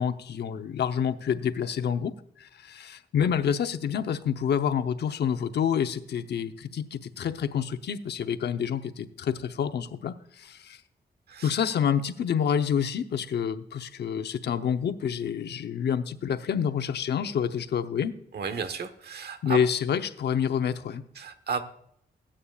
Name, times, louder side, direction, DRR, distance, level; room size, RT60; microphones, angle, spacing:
voice 1, 0.0-10.8 11.4-18.1 19.4-21.0, left 8 dB, 85° left, 9 dB, 0.8 m, -28 dB
voice 2, 18.3-19.6 21.2-21.6, right 5 dB, 75° right, 9 dB, 1.2 m, -33 dB
21.0 x 8.7 x 2.4 m, 0.73 s
wide cardioid pair, 110°, 17 cm